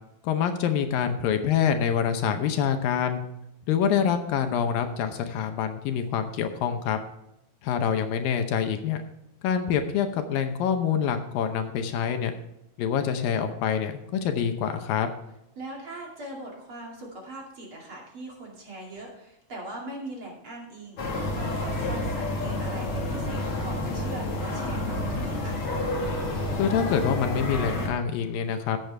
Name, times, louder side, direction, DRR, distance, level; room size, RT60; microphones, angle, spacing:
voice 1, 0.2-3.2 3.7-7.0 7.6-9.0 9.4-12.3 12.8-13.9 14.2-15.1 26.6-28.8, left 8 dB, 75° left, 7 dB, 2.5 m, -26 dB
voice 2, 15.6-25.6, right 1 dB, 40° right, -2 dB, 3.0 m, -41 dB
sound 1, 21.0-27.9, left 1 dB, 45° left, 2.3 m, -29 dB
15.5 x 8.2 x 3.4 m, 0.86 s
omnidirectional pair, 4.2 m